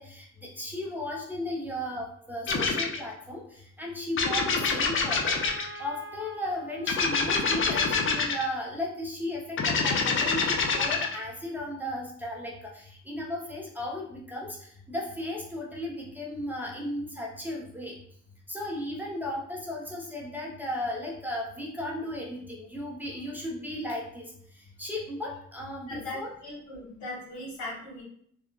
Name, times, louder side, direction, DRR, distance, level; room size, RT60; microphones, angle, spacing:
voice 1, 0.0-5.4 5.8-18.0 18.5-24.2 24.8-26.3, left 1 dB, 5° right, -4 dB, 0.6 m, -35 dB
sound 1, 2.5-3.0 4.2-5.8 6.9-8.4 9.6-11.2, left 4 dB, 45° left, 0.5 m, -26 dB
Trumpet, 4.5-8.2, equal, 60° left, 1.0 m, -45 dB
voice 2, 25.8-28.0, left 1 dB, 85° left, -4 dB, 1.3 m, -39 dB
2.9 x 2.2 x 2.3 m, 0.64 s
cardioid pair, 90°, 30 cm